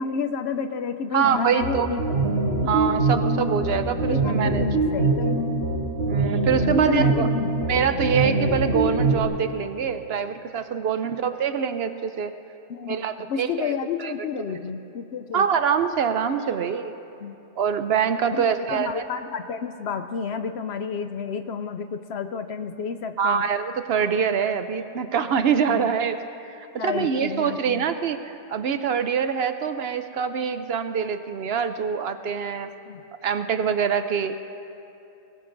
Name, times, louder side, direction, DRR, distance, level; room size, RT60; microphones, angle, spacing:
voice 1, 0.0-2.2 2.6-2.8 3.9-5.5 6.6-7.5 7.8-8.3 11.0-11.2 12.7-15.5 17.2-17.4 18.3-23.4 25.7-25.9 26.8-27.9 32.9-33.0, left 6 dB, 65° left, 9 dB, 0.7 m, -31 dB
voice 2, 1.1-1.9 2.7-4.7 6.0-7.3 7.7-12.3 12.9-13.7 14.0-14.1 14.5-14.6 15.3-16.9 17.6-19.0 23.2-26.2 26.4-32.7 33.2-34.4, right 7 dB, 65° right, 9 dB, 0.7 m, -25 dB
sound 1, 1.2-9.2, right 3 dB, 85° right, 3.3 m, -24 dB
22.5 x 18.5 x 2.6 m, 2.7 s
omnidirectional pair, 1.4 m